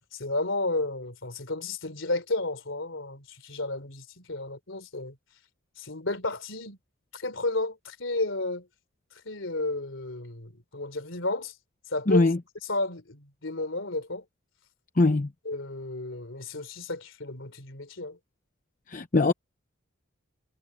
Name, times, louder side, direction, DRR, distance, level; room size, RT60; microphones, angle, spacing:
voice 1, 0.1-5.2 5.8-6.8 7.1-8.7 9.2-11.5 11.9-12.3 12.7-14.2 15.4-18.2, left 2 dB, 65° left, 3.3 m, -32 dB
voice 2, 12.1-12.4 15.0-15.3 18.9-19.3, left 2 dB, 40° left, 0.8 m, -21 dB
head